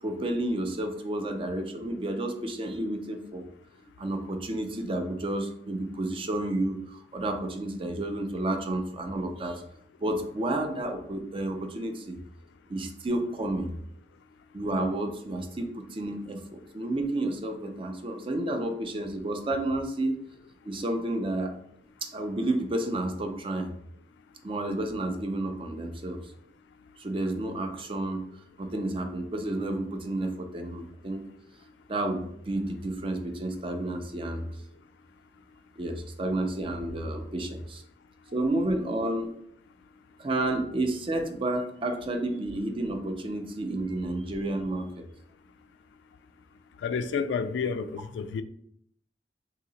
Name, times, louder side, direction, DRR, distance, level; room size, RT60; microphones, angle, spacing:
voice 1, 0.0-3.5 4.0-9.6 10.0-12.2 12.7-13.7 14.5-20.2 20.7-21.5 22.0-23.7 24.4-26.3 27.0-28.3 28.6-31.2 31.9-34.5 35.8-37.8 38.3-39.3 40.2-45.0, right 1 dB, 30° right, 0.4 m, -31 dB
voice 2, 46.8-48.4, left 5 dB, 85° left, 0.3 m, -30 dB
2.9 x 2.8 x 3.9 m
head